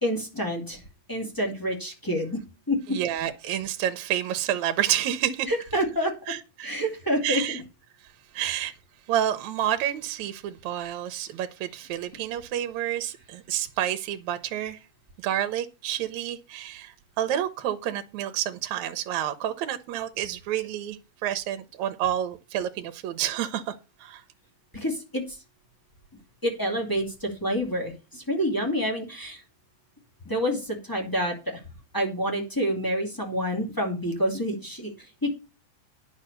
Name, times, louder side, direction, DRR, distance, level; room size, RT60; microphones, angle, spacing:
voice 1, 0.0-0.8 1.1-2.4 2.7-3.0 5.5-6.1 6.6-7.6 8.4-8.5 24.7-25.4 26.4-29.4 30.3-31.6 31.9-35.3, equal, 5° left, 2.0 m, -28 dB
voice 2, 2.9-5.5 6.3-6.7 7.2-7.6 8.3-8.7 9.1-14.8 15.2-23.7 24.0-24.2, right 11 dB, 75° right, 2.0 m, -29 dB
9.6 x 6.2 x 6.7 m
omnidirectional pair, 3.5 m